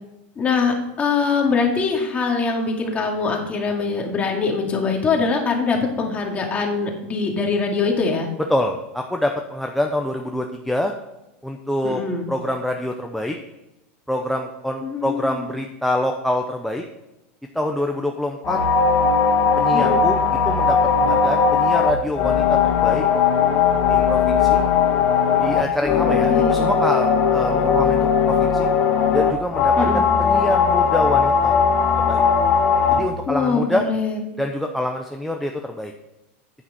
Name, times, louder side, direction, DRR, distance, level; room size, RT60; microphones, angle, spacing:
voice 1, 0.4-8.3 11.8-12.3 14.8-15.5 19.7-20.0 25.8-26.7 29.8-30.0 33.3-34.3, left 4 dB, 20° left, 1 dB, 2.2 m, -23 dB
voice 2, 8.5-10.9 11.4-12.0 12.3-13.4 14.1-16.8 17.5-18.6 19.6-20.2 20.5-23.0 23.9-24.7 25.3-28.7 29.1-31.6 31.9-32.2 32.9-33.8 34.4-35.9, left 1 dB, ahead, 2 dB, 0.6 m, -25 dB
sound 1, 18.4-33.0, left 6 dB, 45° left, 1.7 m, -18 dB
9.7 x 8.9 x 4.2 m, 0.96 s
supercardioid pair, 145°, 7 cm